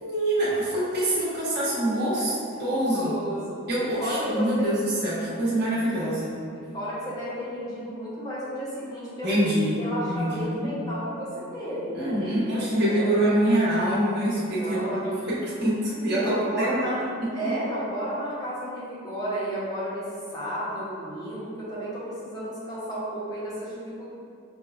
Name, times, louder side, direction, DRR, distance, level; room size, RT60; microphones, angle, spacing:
voice 1, 0.0-3.1 3.7-6.4 9.2-9.8 10.1-10.7 11.9-16.9 17.4-17.5, right 1 dB, 50° right, -9 dB, 1.1 m, -25 dB
voice 2, 2.9-3.5 3.8-4.7 6.5-9.4 9.8-13.1 14.6-15.4 16.2-17.0 17.3-20.1 20.3-24.1, right 1 dB, 15° left, -10 dB, 0.8 m, -33 dB
5.9 x 2.3 x 2.4 m, 2.4 s
head